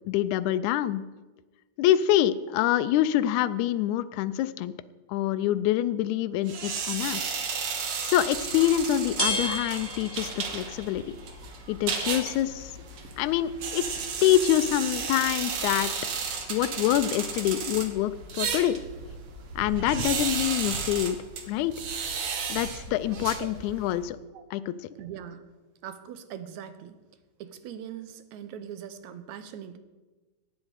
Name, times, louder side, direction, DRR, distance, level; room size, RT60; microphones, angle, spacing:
voice 1, 0.1-1.0 1.8-4.7 5.1-7.2 7.8-11.2 11.7-12.7 13.2-13.8 14.2-15.9 16.5-18.8 19.6-21.2 21.5-21.8 22.5-24.2 24.5-24.8, left 12 dB, 80° left, 12 dB, 1.9 m, -26 dB
sound 1, 6.5-24.0, right 5 dB, 55° right, 1.9 m, -34 dB
sound 2, 8.2-19.7, equal, 10° right, 1.6 m, -39 dB
voice 2, 25.0-25.5 25.8-26.9 27.4-29.8, right 9 dB, 75° right, 11 dB, 2.0 m, -41 dB
17.0 x 9.4 x 4.8 m, 1.2 s
omnidirectional pair, 3.5 m